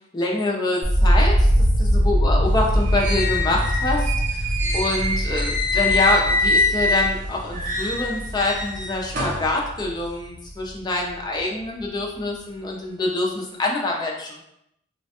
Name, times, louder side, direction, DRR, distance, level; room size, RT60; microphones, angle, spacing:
voice 1, 0.1-1.5 1.8-4.5 4.7-14.4, left 2 dB, 20° left, -1 dB, 0.4 m, -25 dB
sound 1, 0.8-10.8 11.1-11.8, equal, 80° right, 0.6 m, -23 dB
sound 2, 2.5-7.2 7.5-9.5, left 2 dB, 45° right, 0.7 m, -24 dB
3.1 x 2.2 x 2.8 m, 0.79 s
head